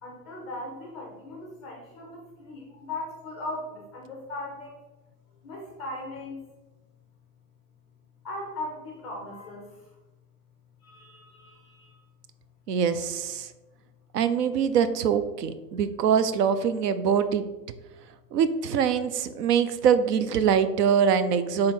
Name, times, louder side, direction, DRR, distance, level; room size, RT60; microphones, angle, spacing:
voice 1, 0.0-4.7 5.4-6.4 8.2-9.7 10.8-11.9, left 2 dB, ahead, -2 dB, 0.4 m, -38 dB
voice 2, 12.7-13.5 14.1-17.4 18.3-21.7, right 7 dB, 75° right, 12 dB, 0.7 m, -23 dB
5.8 x 3.8 x 4.4 m, 1.1 s
supercardioid pair, 165°, 49 cm